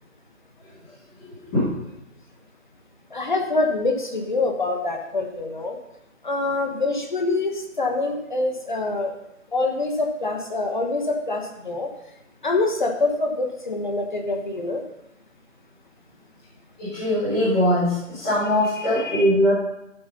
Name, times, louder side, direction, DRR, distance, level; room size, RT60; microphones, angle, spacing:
voice 1, 3.1-5.8 6.2-9.1 9.5-11.9 12.4-14.8 19.0-19.3, left 3 dB, 35° left, 2 dB, 1.5 m, -25 dB
voice 2, 16.8-19.5, left 1 dB, 5° left, -15 dB, 1.3 m, -21 dB
13.5 x 7.7 x 5.3 m, 0.85 s
figure-of-eight pair, 175°, 40 cm